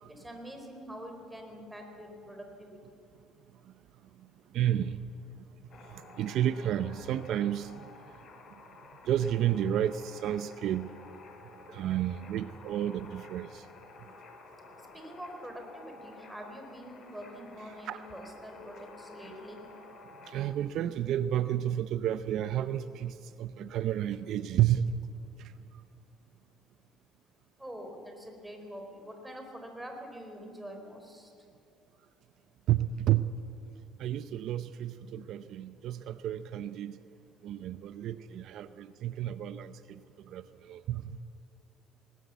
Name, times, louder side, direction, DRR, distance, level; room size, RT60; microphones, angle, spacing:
voice 1, 0.1-2.8 14.9-19.6 27.6-31.3, equal, 5° right, 3 dB, 4.1 m, -45 dB
voice 2, 4.5-5.0 5.9-7.7 9.1-10.9 11.7-13.6 17.8-18.0 20.3-25.0 25.4-25.5 32.7-33.3 34.0-37.0 37.4-40.0 40.3-41.2, right 11 dB, 65° right, 13 dB, 0.6 m, -31 dB
sound 1, 5.7-20.5, left 3 dB, 45° left, 3.5 m, -52 dB
20.0 x 19.5 x 8.2 m, 2.6 s
cardioid pair, 115°, 0 cm